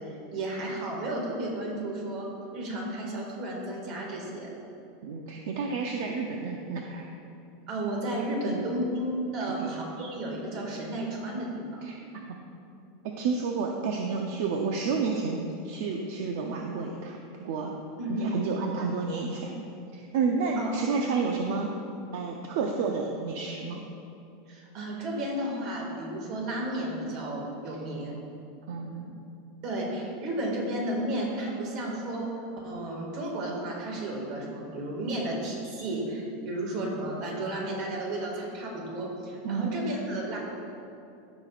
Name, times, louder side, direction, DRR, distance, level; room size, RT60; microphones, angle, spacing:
voice 1, 0.0-4.5 7.7-11.8 18.0-18.4 20.6-20.8 24.5-28.2 29.6-32.3 32.6-40.4, right 1 dB, 40° right, -1 dB, 1.9 m, -33 dB
voice 2, 5.0-7.1 8.4-8.6 9.5-9.7 11.8-12.3 13.2-17.7 18.1-19.6 19.9-21.7 22.1-23.8 27.7-27.8 28.7-29.2 39.4-39.7, right 4 dB, 60° right, 2 dB, 0.6 m, -30 dB
15.0 x 6.0 x 2.5 m, 2.7 s
supercardioid pair, 165°, 0 cm